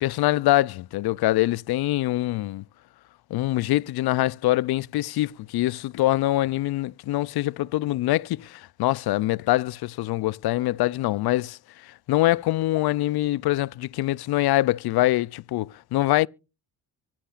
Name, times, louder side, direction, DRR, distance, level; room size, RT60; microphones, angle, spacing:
voice 1, 0.0-2.6 3.3-16.3, left 16 dB, 55° left, 0.5 m, -24 dB
24.5 x 8.6 x 2.4 m
supercardioid pair, 60°, 45 cm